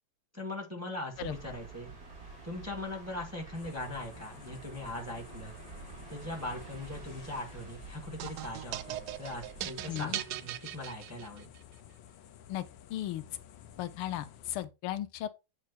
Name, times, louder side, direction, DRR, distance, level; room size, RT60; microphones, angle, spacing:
voice 1, 0.3-1.9 2.4-5.6 6.1-11.5, left 1 dB, 5° right, 1.8 m, -40 dB
sound 1, 1.1-9.7, right 3 dB, 40° right, 3.3 m, -49 dB
sound 2, 3.5-14.7, left 10 dB, 70° left, 1.4 m, -53 dB
sound 3, 8.2-11.6, right 13 dB, 90° right, 0.9 m, -39 dB
voice 2, 9.9-10.2 12.5-12.6 12.9-13.2 13.8-15.3, left 13 dB, 90° left, 1.6 m, -36 dB
8.3 x 3.8 x 4.1 m
omnidirectional pair, 2.3 m